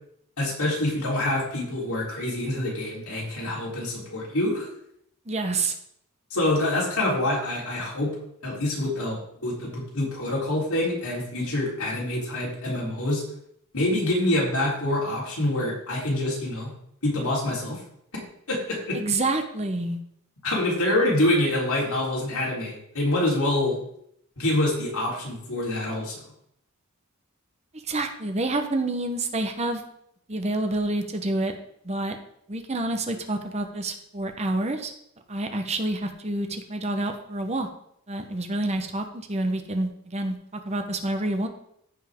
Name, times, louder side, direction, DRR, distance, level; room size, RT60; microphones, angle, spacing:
voice 1, 0.4-4.7 6.3-8.1 8.4-13.2 13.7-16.7 17.0-17.8 18.5-19.0 20.4-23.8 24.4-26.2, left 1 dB, 90° left, -4 dB, 3.7 m, -26 dB
voice 2, 5.3-5.7 18.9-20.0 27.9-29.8 30.3-31.5 31.8-32.2 32.5-34.9 35.3-37.7 38.1-41.5, right 2 dB, 30° right, 6 dB, 0.9 m, -28 dB
15.0 x 5.5 x 3.7 m, 0.71 s
head